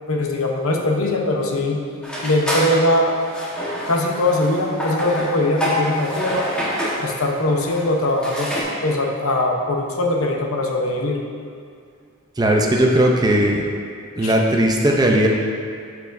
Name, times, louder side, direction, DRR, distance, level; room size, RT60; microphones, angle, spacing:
voice 1, 0.1-1.8 2.2-3.1 3.9-6.5 7.0-8.5 8.8-11.2 14.2-14.3, left 1 dB, 70° left, 1 dB, 0.8 m, -21 dB
sound 1, 2.0-8.6, equal, 5° left, 1.2 m, -26 dB
voice 2, 12.4-13.6 14.2-15.3, right 1 dB, 20° right, 0 dB, 0.5 m, -17 dB
12.0 x 4.8 x 2.6 m, 2.3 s
head